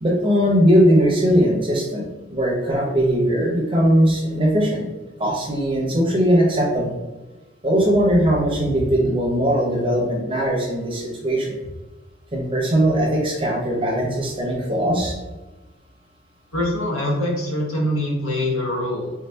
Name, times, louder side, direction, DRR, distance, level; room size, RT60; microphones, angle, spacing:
voice 1, 0.0-2.0 2.3-4.8 5.2-7.0 7.6-11.5 12.3-15.1, equal, 25° right, -2 dB, 0.7 m, -19 dB
voice 2, 16.5-19.1, left 1 dB, 85° left, -2 dB, 0.9 m, -24 dB
3.7 x 2.6 x 2.2 m, 1.1 s
head